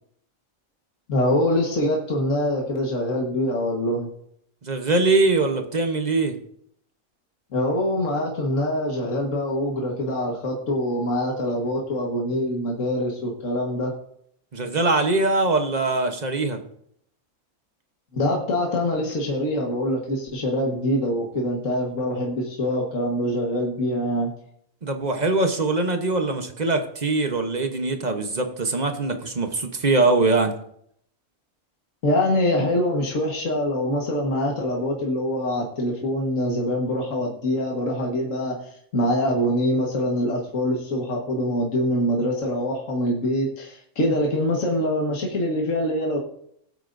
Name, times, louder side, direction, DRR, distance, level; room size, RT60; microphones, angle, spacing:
voice 1, 1.1-4.1 7.5-13.9 18.1-24.3 32.0-38.6 38.9-46.2, left 1 dB, 70° left, -1 dB, 1.9 m, -24 dB
voice 2, 4.6-6.3 14.5-16.6 24.8-30.5, right 3 dB, 35° right, 6 dB, 1.0 m, -22 dB
19.5 x 8.2 x 2.6 m, 0.70 s
omnidirectional pair, 1.4 m